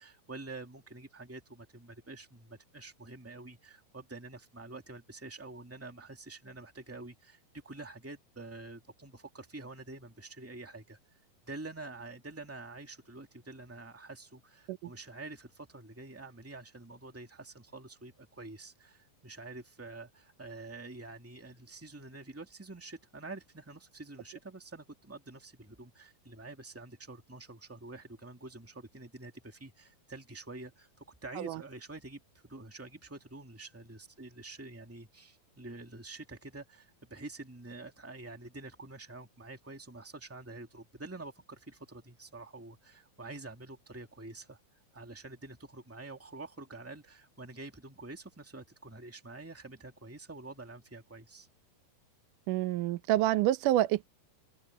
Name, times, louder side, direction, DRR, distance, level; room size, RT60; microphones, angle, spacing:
voice 1, 0.0-11.0 11.4-44.6 44.9-51.5, right 2 dB, 5° right, 1.4 m, -47 dB
voice 2, 52.5-54.1, right 14 dB, 75° right, 2.1 m, -27 dB
open air
omnidirectional pair, 4.2 m